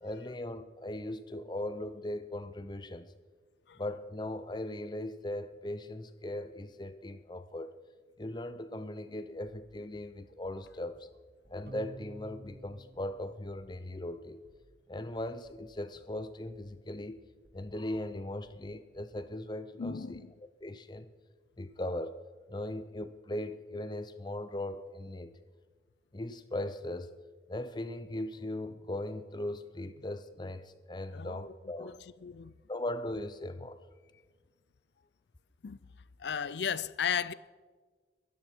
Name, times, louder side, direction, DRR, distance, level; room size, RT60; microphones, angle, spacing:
voice 1, 0.0-3.1 3.8-7.7 8.2-11.0 11.5-14.4 14.9-17.2 17.5-20.0 20.6-21.1 21.6-22.2 22.5-25.3 26.1-27.1 27.5-32.0 32.7-33.8, left 1 dB, 25° left, 0.6 m, -39 dB
sound 1, 9.9-19.2, equal, 5° right, 2.0 m, -64 dB
sound 2, 11.7-14.3, right 1 dB, 55° right, 1.2 m, -51 dB
voice 2, 19.8-20.3 31.1-32.5 35.6-35.8 36.2-37.3, left 7 dB, 70° left, 0.5 m, -35 dB
22.0 x 13.0 x 4.5 m
head